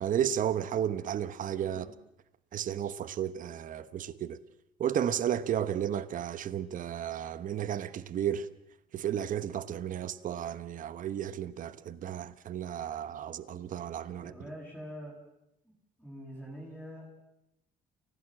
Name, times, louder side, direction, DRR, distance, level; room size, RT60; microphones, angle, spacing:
voice 1, 0.0-1.8 2.5-4.4 4.8-8.5 8.9-14.3, right 10 dB, 50° right, 1.1 m, -33 dB
voice 2, 14.2-15.2 16.0-17.1, equal, ahead, 7.5 m, -44 dB
29.0 x 16.5 x 7.5 m
cardioid pair, 110°, 17 cm